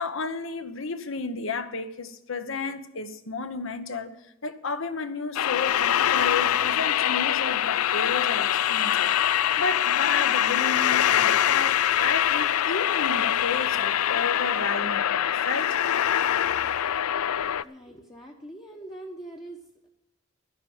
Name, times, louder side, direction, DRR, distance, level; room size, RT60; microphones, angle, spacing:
voice 1, 0.0-4.1 4.4-15.8, left 4 dB, 60° left, 1.0 m, -32 dB
sound 1, 5.4-17.6, left 11 dB, 85° left, 0.4 m, -24 dB
voice 2, 17.6-19.9, right 1 dB, 20° left, 1.1 m, -43 dB
12.0 x 10.5 x 7.2 m
head